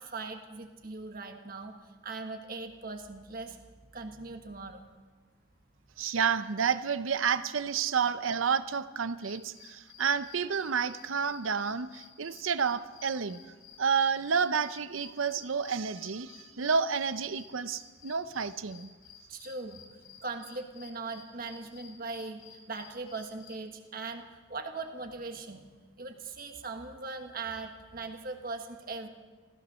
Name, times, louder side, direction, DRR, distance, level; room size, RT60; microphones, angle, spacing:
voice 1, 0.0-1.7 2.0-3.6 3.9-4.9 19.3-19.8 20.2-25.7 26.0-29.1, right 3 dB, 45° right, 5 dB, 1.4 m, -40 dB
voice 2, 6.0-13.4 13.8-18.9, right 6 dB, 80° right, 13 dB, 0.7 m, -30 dB
sound 1, 9.1-23.6, left 7 dB, 90° left, 2.7 m, -55 dB
15.5 x 15.0 x 6.3 m, 1.3 s
head